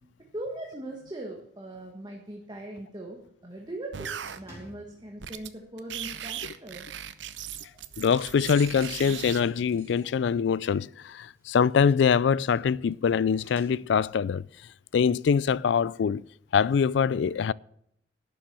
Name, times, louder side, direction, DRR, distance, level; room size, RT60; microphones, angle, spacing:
voice 1, 0.0-6.8 7.3-7.8 9.9-10.1 12.9-13.0, right 1 dB, 25° right, 1.5 m, -41 dB
sound 1, 3.9-4.4 5.2-5.5 5.8-9.4, right 9 dB, 80° right, 0.8 m, -38 dB
sound 2, 4.2-5.3 5.5-5.9 6.2-6.3 6.8-6.9 7.5-9.4 10.9-14.3, equal, 15° left, 4.4 m, -56 dB
voice 2, 8.0-14.4 14.9-16.3 16.5-17.5, left 6 dB, 75° left, 0.3 m, -24 dB
sound 3, 8.3-11.0 11.7-11.8 12.9-13.0, right 8 dB, 55° right, 2.5 m, -48 dB
11.5 x 7.1 x 7.6 m
head